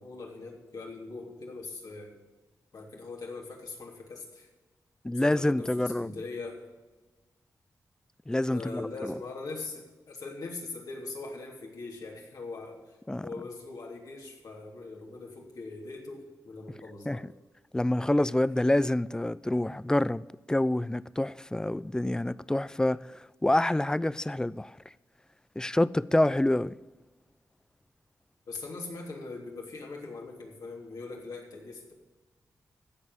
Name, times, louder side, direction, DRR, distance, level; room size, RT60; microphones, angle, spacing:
voice 1, 0.0-2.2 2.7-4.5 5.1-6.5 8.5-17.3 28.5-31.9, left 3 dB, 80° left, 3.1 m, -41 dB
voice 2, 5.0-6.1 8.3-9.1 13.1-13.3 17.1-17.2 17.7-24.8 25.6-26.7, left 1 dB, 10° left, 0.4 m, -27 dB
15.0 x 5.4 x 8.1 m
cardioid pair, 65°, 6 cm